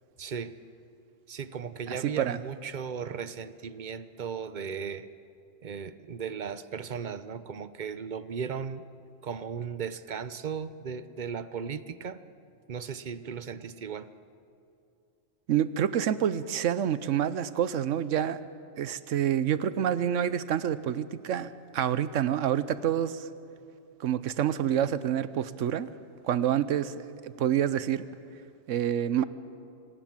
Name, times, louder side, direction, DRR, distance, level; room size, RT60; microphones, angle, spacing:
voice 1, 0.2-0.5 1.3-5.1 5.6-8.8 9.2-12.2 12.7-14.1, right 6 dB, 45° right, 13 dB, 0.7 m, -36 dB
voice 2, 1.9-2.4 15.5-18.4 18.8-23.3 24.0-25.9 26.2-26.9 27.2-28.0 28.7-29.2, right 10 dB, 75° right, 15 dB, 1.1 m, -27 dB
25.5 x 18.0 x 7.5 m, 2.5 s
omnidirectional pair, 1.3 m